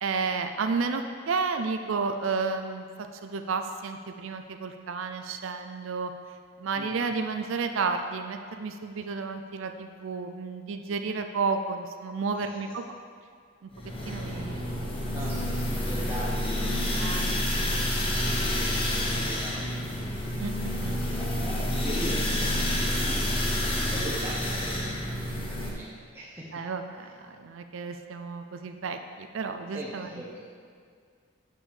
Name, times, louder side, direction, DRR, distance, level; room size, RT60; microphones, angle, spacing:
voice 1, 0.0-6.1 6.6-12.8 13.6-13.7 14.1-15.1 17.0-17.3 17.7-18.1 20.4-21.0 26.5-30.1, right 4 dB, 70° right, 7 dB, 0.4 m, -32 dB
voice 2, 6.8-7.3 12.3-12.7 14.5-14.6 15.1-17.8 18.4-19.8 21.1-26.5 27.0-27.1 27.7-27.8 29.7-30.4, right 1 dB, 10° right, -7 dB, 0.9 m, -41 dB
sound 1, 13.8-25.7, left 1 dB, 25° left, 1.0 m, -29 dB
6.9 x 6.2 x 6.5 m, 2.1 s
head